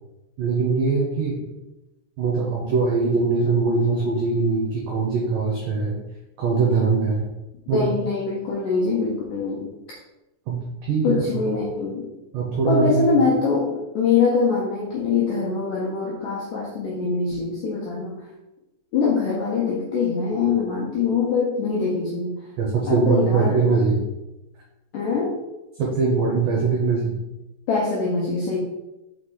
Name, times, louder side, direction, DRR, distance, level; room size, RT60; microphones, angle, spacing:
voice 1, 0.4-1.4 2.2-6.0 6.4-7.3 7.7-7.9 10.5-11.4 12.3-13.2 22.6-24.0 25.8-27.2, right 4 dB, 70° right, -3 dB, 2.1 m, -22 dB
voice 2, 7.7-9.7 11.0-12.1 12.7-18.2 18.9-22.3 22.9-23.7 24.9-25.4 27.7-28.6, left 4 dB, 75° left, -4 dB, 1.9 m, -23 dB
6.0 x 4.9 x 3.9 m, 0.99 s
omnidirectional pair, 5.0 m